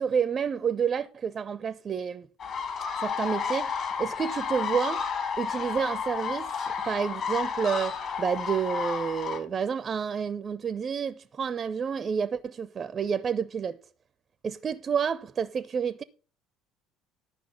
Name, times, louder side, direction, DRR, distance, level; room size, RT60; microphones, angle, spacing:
voice 1, 0.0-2.3 3.0-5.1 5.4-13.8 14.4-16.0, right 7 dB, 35° right, 0.5 m, -29 dB
sound 1, 2.4-9.4, left 6 dB, 50° left, 3.5 m, -31 dB
11.5 x 5.7 x 5.6 m
figure-of-eight pair, 60°, 0 cm